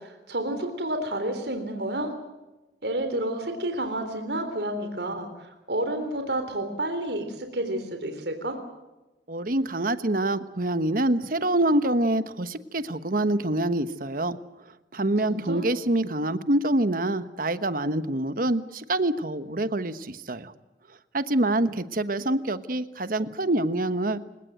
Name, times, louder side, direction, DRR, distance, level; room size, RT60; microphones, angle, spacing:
voice 1, 0.0-2.1 2.8-8.6 15.2-15.7, right 1 dB, 70° right, 6 dB, 3.6 m, -30 dB
voice 2, 9.3-14.4 14.9-20.5 21.1-24.2, right 1 dB, 50° right, 12 dB, 1.2 m, -26 dB
28.5 x 17.5 x 7.8 m, 1.1 s
head